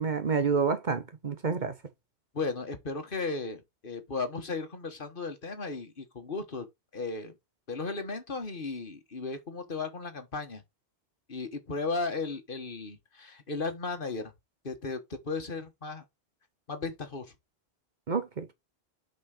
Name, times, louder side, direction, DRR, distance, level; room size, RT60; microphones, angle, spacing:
voice 1, 0.0-1.8 18.1-18.5, right 5 dB, 50° right, 1.0 m, -28 dB
voice 2, 2.3-6.7 6.9-7.3 7.7-10.6 11.3-14.3 14.6-16.0 16.7-17.3, left 4 dB, 55° left, 1.7 m, -35 dB
6.3 x 5.5 x 4.9 m
omnidirectional pair, 1.1 m